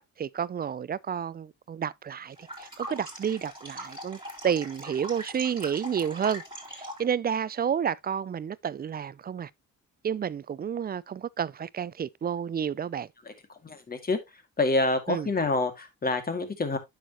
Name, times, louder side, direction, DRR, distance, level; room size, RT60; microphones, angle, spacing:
voice 1, 0.0-6.4 6.7-9.5 10.0-13.1 15.1-15.3, right 8 dB, 30° right, 0.4 m, -30 dB
sound 1, 2.3-7.1, right 1 dB, 15° right, 4.0 m, -41 dB
voice 2, 13.6-14.2 14.6-16.8, left 2 dB, 30° left, 2.2 m, -27 dB
9.1 x 6.5 x 2.9 m
cardioid pair, 90°, 30 cm